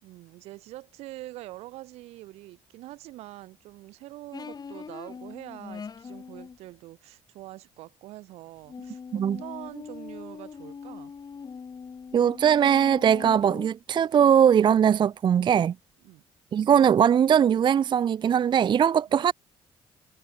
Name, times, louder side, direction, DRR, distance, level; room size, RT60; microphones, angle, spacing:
voice 1, 0.0-11.1 16.0-16.2, right 17 dB, 85° right, 4.5 m, -44 dB
sound 1, 4.3-6.6 8.7-13.7, left 6 dB, 40° left, 1.8 m, -41 dB
voice 2, 12.1-15.7 16.5-19.3, right 8 dB, 50° right, 0.5 m, -20 dB
supercardioid pair, 75°, 10 cm